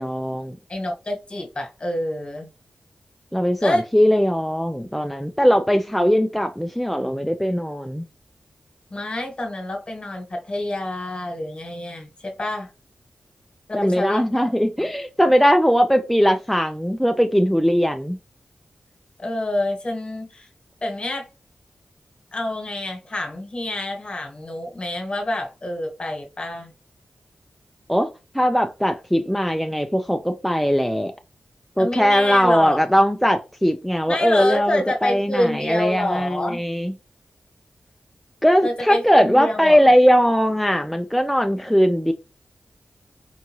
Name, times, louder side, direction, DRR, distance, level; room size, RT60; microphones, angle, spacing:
voice 1, 0.0-0.6 3.3-8.0 13.7-18.2 27.9-28.1 28.3-31.1 31.8-36.9 38.4-42.1, equal, ahead, 0.4 m, -19 dB
voice 2, 0.7-2.5 3.6-3.9 8.9-12.7 13.7-14.3 14.8-14.9 19.2-20.5 20.8-21.3 22.3-26.7 31.8-32.9 34.1-36.6 38.6-39.8, left 1 dB, 40° left, 1.3 m, -27 dB
4.6 x 2.6 x 2.9 m
cardioid pair, 65°, 3 cm